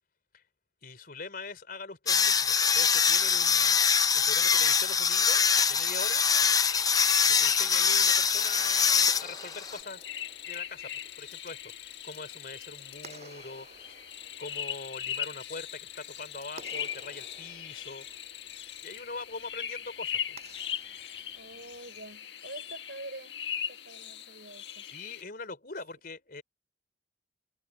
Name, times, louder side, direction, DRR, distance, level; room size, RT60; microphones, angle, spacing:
voice 1, 0.8-3.8 4.1-6.2 7.3-10.0 10.5-14.0 14.4-18.1 18.8-20.4 24.8-26.4, left 4 dB, 55° left, 4.0 m, -42 dB
sound 1, 2.1-9.8, left 6 dB, 20° left, 0.6 m, -24 dB
Clapping, 5.4-22.2, right 4 dB, 40° right, 5.9 m, -55 dB
sound 2, 5.5-25.2, left 9 dB, 75° left, 1.6 m, -40 dB
voice 2, 21.3-23.4 23.7-24.9, right 2 dB, 70° right, 6.1 m, -45 dB
head